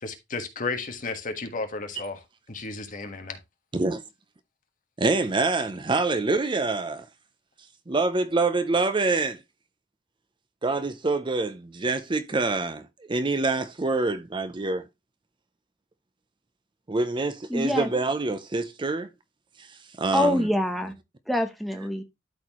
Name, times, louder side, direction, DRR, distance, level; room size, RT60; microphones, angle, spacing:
voice 1, 0.0-3.4, left 3 dB, 45° left, 1.5 m, -33 dB
voice 2, 5.0-7.1 7.9-9.4 10.6-14.8 16.9-19.1 19.6-20.5, right 3 dB, 25° right, 0.5 m, -26 dB
voice 3, 17.5-17.9 20.1-20.9 21.3-22.0, left 1 dB, ahead, 0.8 m, -25 dB
12.5 x 4.3 x 3.0 m
head